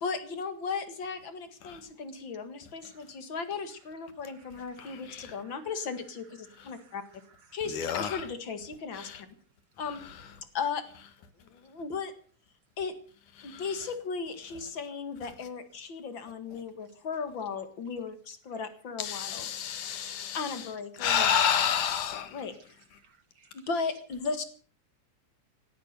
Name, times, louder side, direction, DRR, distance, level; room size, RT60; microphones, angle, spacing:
voice 1, 0.0-7.0 7.5-9.3 9.8-10.0 10.5-10.8 11.4-12.1 12.8-12.9 13.4-19.5 20.3-21.3 22.3-22.5 23.5-24.4, left 5 dB, 45° left, 2.4 m, -36 dB
voice 2, 2.8-3.1 4.2-5.6 6.4-7.6 23.0-23.7, right 5 dB, 65° right, 1.5 m, -62 dB
voice 3, 4.8-5.3 7.7-8.2 8.9-9.2 13.4-13.7 19.0-20.7 21.0-22.4, left 8 dB, 85° left, 3.2 m, -30 dB
17.5 x 12.5 x 6.6 m
omnidirectional pair, 3.4 m